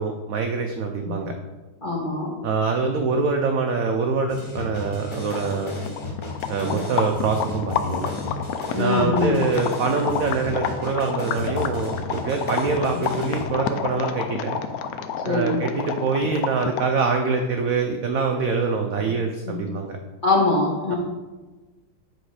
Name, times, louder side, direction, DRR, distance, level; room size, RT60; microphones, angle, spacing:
voice 1, 0.0-1.3 2.4-5.7 6.5-8.1 8.7-14.6 15.2-20.0, right 4 dB, 75° right, 4 dB, 0.8 m, -24 dB
voice 2, 1.8-2.3 6.6-6.8 8.7-9.4 12.9-13.0 15.2-15.6 19.0-19.1 19.5-19.6 20.2-20.9, left 3 dB, 35° left, -3 dB, 0.9 m, -23 dB
sound 1, 4.3-13.5, left 3 dB, 50° left, 0.3 m, -34 dB
sound 2, 5.3-17.0, left 7 dB, 75° left, 0.8 m, -29 dB
7.8 x 4.1 x 4.8 m, 1.2 s
omnidirectional pair, 2.1 m